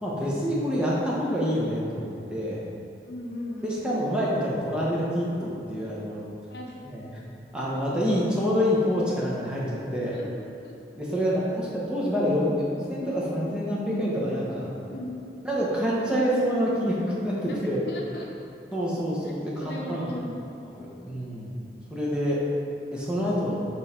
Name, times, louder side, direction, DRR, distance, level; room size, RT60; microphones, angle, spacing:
voice 1, 0.0-2.6 3.6-6.2 6.9-7.2 7.5-10.1 11.0-14.7 15.4-17.8 18.7-20.1 20.8-21.5 21.9-22.4 22.9-23.6, equal, 5° right, -7 dB, 0.9 m, -27 dB
voice 2, 3.0-4.1 6.5-6.8 10.1-10.8 14.8-15.2 15.9-16.1 17.5-18.3 19.2-20.3, equal, 65° left, -2 dB, 0.8 m, -38 dB
6.2 x 3.8 x 4.3 m, 2.6 s
head